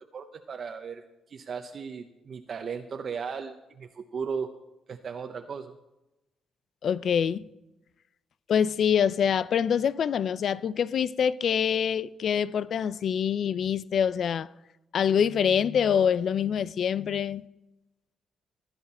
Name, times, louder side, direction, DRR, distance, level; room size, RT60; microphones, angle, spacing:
voice 1, 0.1-1.0 1.3-4.5 4.9-5.7, right 6 dB, 50° right, 0.8 m, -36 dB
voice 2, 6.8-7.4 8.5-14.5 14.9-17.4, left 8 dB, 60° left, 0.5 m, -25 dB
16.5 x 10.5 x 4.3 m
cardioid pair, 90°, 0 cm